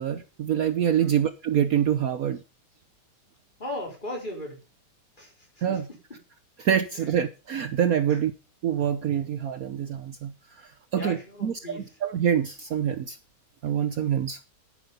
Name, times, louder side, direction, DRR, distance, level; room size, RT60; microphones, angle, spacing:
voice 1, 0.0-2.4 5.6-5.9 6.6-8.3 8.6-13.2 13.6-14.4, right 9 dB, 60° right, 1.2 m, -26 dB
voice 2, 3.6-4.6 5.2-5.3 5.7-5.8 6.9-7.1 8.1-8.2 10.9-11.9, left 1 dB, 25° left, 4.3 m, -37 dB
11.0 x 9.8 x 5.4 m
omnidirectional pair, 1.9 m